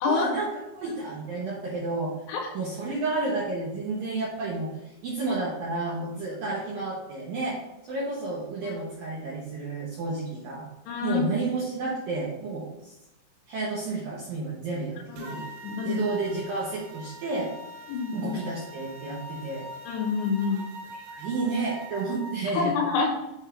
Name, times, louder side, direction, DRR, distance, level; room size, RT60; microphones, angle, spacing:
voice 1, 0.1-2.1 2.5-4.8 5.0-7.6 7.9-10.7 11.0-12.9 13.5-17.5 18.1-19.7 20.4-20.6 20.9-22.7, right 3 dB, 75° right, -5 dB, 2.1 m, -31 dB
voice 2, 10.9-11.2 15.1-15.2 15.6-16.0 17.9-18.3 19.9-20.6 22.5-23.1, left 5 dB, 75° left, 2 dB, 3.1 m, -27 dB
sound 1, 15.2-22.3, equal, 90° right, 3.9 m, -43 dB
8.0 x 3.6 x 5.5 m, 0.93 s
omnidirectional pair, 5.7 m